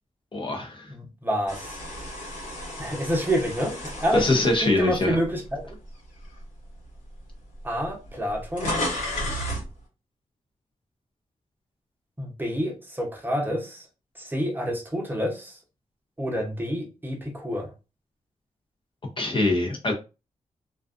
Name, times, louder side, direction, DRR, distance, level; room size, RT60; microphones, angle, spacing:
voice 1, 0.3-0.9 4.1-5.2 19.2-19.9, left 2 dB, 40° left, 0.7 m, -23 dB
voice 2, 0.9-1.7 2.8-5.6 7.6-8.8 12.2-13.9 14.2-15.6 16.2-17.7, equal, 15° right, 0.7 m, -28 dB
sound 1, 1.5-5.7 6.2-6.4 7.3-7.4 7.6-9.7, left 1 dB, 85° left, 1.3 m, -33 dB
2.5 x 2.3 x 2.4 m
wide cardioid pair, 100°, 13 cm